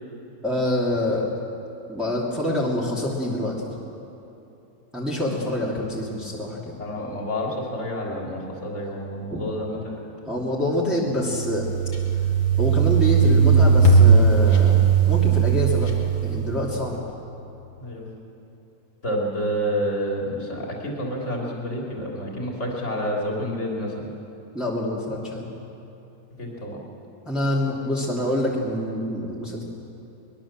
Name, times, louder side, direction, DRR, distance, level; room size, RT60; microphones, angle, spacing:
voice 1, 0.4-1.3 1.9-3.7 4.9-6.7 9.3-9.4 10.2-11.7 12.6-15.9 16.2-17.0 24.5-25.5 27.2-29.6, left 1 dB, ahead, -5 dB, 2.7 m, -26 dB
voice 2, 6.8-10.0 17.8-18.1 19.0-24.0 26.4-26.8, equal, 45° left, -1 dB, 3.6 m, -29 dB
sound 1, 11.2-16.8, right 5 dB, 85° left, 3.3 m, -18 dB
23.5 x 21.0 x 7.4 m, 2.9 s
omnidirectional pair, 1.7 m